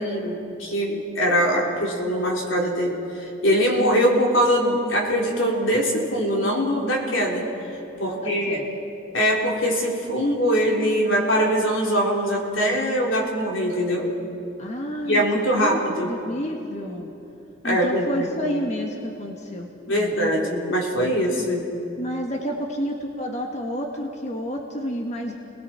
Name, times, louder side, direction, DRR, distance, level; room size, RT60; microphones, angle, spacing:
voice 1, 0.0-7.4 8.0-8.6 9.1-14.1 15.0-16.1 17.6-18.3 19.9-21.7, equal, 85° left, -2 dB, 3.7 m, -22 dB
voice 2, 7.9-8.7 14.6-15.2 15.6-15.8 16.1-17.1 17.6-20.1 22.0-25.3, equal, 35° left, 1 dB, 1.5 m, -30 dB
30.0 x 20.0 x 4.4 m, 2.9 s
head